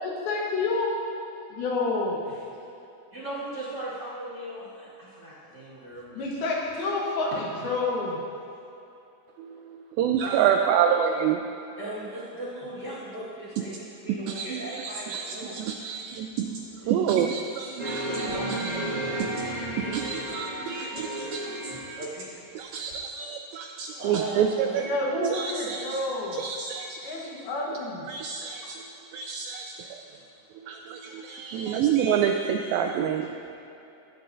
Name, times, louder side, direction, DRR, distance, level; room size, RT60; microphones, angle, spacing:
voice 1, 0.0-0.9 1.5-2.2 6.2-8.2 24.8-26.4 27.0-28.1, left 3 dB, 75° left, -3 dB, 3.3 m, -29 dB
voice 2, 2.3-2.6 3.1-6.4 7.3-7.4 10.2-10.3 10.6-10.7 11.8-15.6 16.8-16.9 17.6-18.8 19.8-21.4 22.0-22.5 24.0-24.8, right 1 dB, 40° right, -10 dB, 1.6 m, -39 dB
voice 3, 9.4-11.4 13.7-21.5 21.9-22.0 22.6-26.1 26.3-27.2 27.7-27.8 28.1-28.8 29.1-30.0 30.5-33.3, right 8 dB, 85° right, 4 dB, 2.1 m, -28 dB
sound 1, 17.8-22.1 22.9-23.0, right 1 dB, 50° left, 0.4 m, -33 dB
18.0 x 8.7 x 2.7 m, 2.9 s
omnidirectional pair, 4.6 m